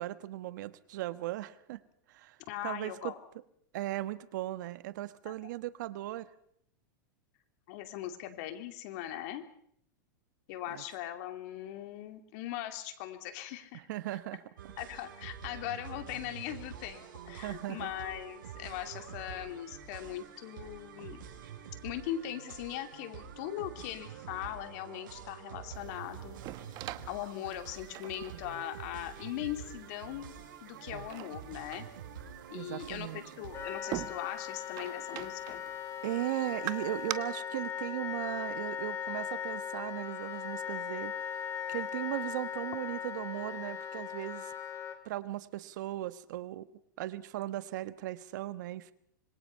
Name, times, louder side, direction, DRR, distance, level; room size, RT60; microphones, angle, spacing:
voice 1, 0.0-1.8 2.1-3.2 3.7-6.3 10.7-10.8 13.7-14.4 17.3-17.9 28.3-28.6 30.9-31.1 32.5-33.3 36.0-41.4 41.7-44.5 45.0-46.7 47.0-48.9, right 15 dB, 65° right, 13 dB, 1.3 m, -38 dB
voice 2, 2.5-3.2 5.3-5.4 7.7-9.4 10.5-13.8 14.8-21.2 21.8-26.4 27.1-30.3 30.6-31.9 32.5-35.6, left 12 dB, 55° left, 7 dB, 2.6 m, -40 dB
sound 1, 14.6-33.8, right 8 dB, 90° right, 6.2 m, -47 dB
sound 2, 25.7-37.1, right 16 dB, 40° right, 1.0 m, -45 dB
Wind instrument woodwind instrument, 33.5-45.0, left 8 dB, 25° left, 2.1 m, -39 dB
26.0 x 21.0 x 5.7 m, 0.70 s
supercardioid pair, 140°, 11 cm